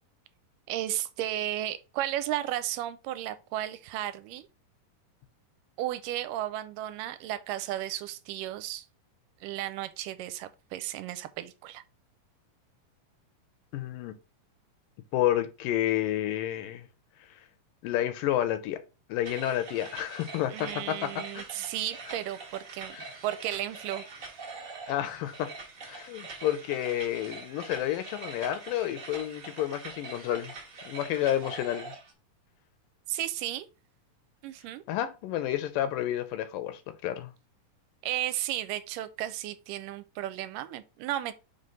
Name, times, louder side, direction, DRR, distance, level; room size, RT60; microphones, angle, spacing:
voice 1, 0.7-4.5 5.8-8.9 9.4-11.8 20.5-23.0 23.2-24.0 31.2-31.4 33.1-33.7 34.4-34.8 38.0-41.3, right 13 dB, 80° right, 2.2 m, -34 dB
voice 2, 13.7-14.1 15.1-16.9 17.8-18.8 19.1-21.5 22.9-23.1 24.9-25.5 25.9-30.5 30.9-31.9 34.9-37.3, left 12 dB, 80° left, 2.3 m, -30 dB
sound 1, 19.2-32.1, right 3 dB, 50° right, 1.0 m, -44 dB
5.6 x 3.4 x 5.2 m
omnidirectional pair, 3.9 m